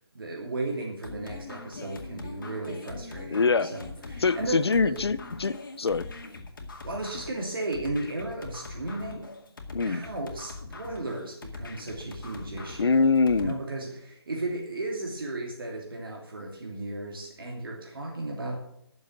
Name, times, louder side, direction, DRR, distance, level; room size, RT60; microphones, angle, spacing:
voice 1, 0.1-5.0 6.8-9.3 9.8-13.0 13.3-18.6, right 2 dB, 60° right, 0 dB, 2.8 m, -35 dB
sound 1, 1.0-13.5, left 3 dB, 50° left, 2.2 m, -42 dB
voice 2, 3.3-3.7 4.2-6.1 9.7-10.0 12.8-13.5, left 4 dB, 75° left, 16 dB, 0.7 m, -24 dB
10.5 x 7.1 x 7.8 m, 0.74 s
hypercardioid pair, 170°, 13 cm